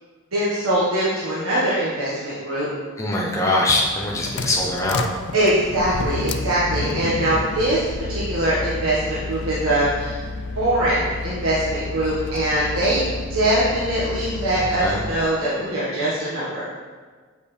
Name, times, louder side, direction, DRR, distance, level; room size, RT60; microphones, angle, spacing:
voice 1, 0.3-2.7 5.3-10.2 10.5-13.0 13.3-16.6, right 1 dB, 80° right, -8 dB, 1.4 m, -22 dB
voice 2, 3.0-5.1 14.6-15.0, left 2 dB, 15° left, -3 dB, 0.8 m, -22 dB
sound 1, 3.8-15.3, left 3 dB, 50° left, 0.4 m, -31 dB
6.6 x 5.5 x 3.2 m, 1.5 s
head